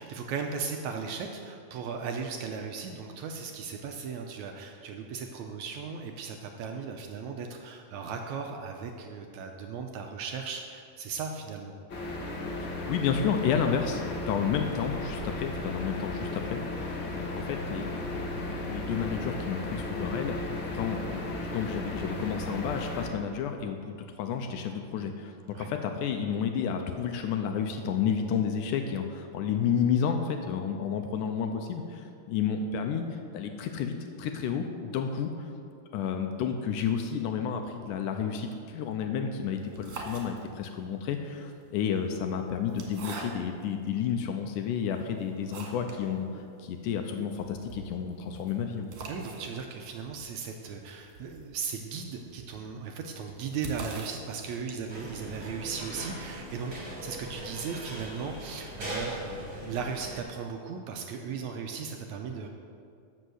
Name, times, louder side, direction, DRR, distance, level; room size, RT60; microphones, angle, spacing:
voice 1, 0.0-11.7 25.5-25.7 49.1-62.5, right 5 dB, 80° right, 3 dB, 1.7 m, -37 dB
sound 1, 11.9-23.1, left 2 dB, 55° left, 1.3 m, -35 dB
voice 2, 12.9-25.3 25.6-35.3 35.9-48.9, left 7 dB, 80° left, 5 dB, 2.0 m, -31 dB
sound 2, 39.6-40.8 41.7-43.7 44.3-44.4 44.9-46.1 46.4-46.5 46.7-46.8 47.2-55.1, right 3 dB, 60° right, 2.5 m, -44 dB
sound 3, 54.9-60.2, equal, 30° right, 2.7 m, -40 dB
12.5 x 5.5 x 7.8 m, 2.4 s
omnidirectional pair, 4.0 m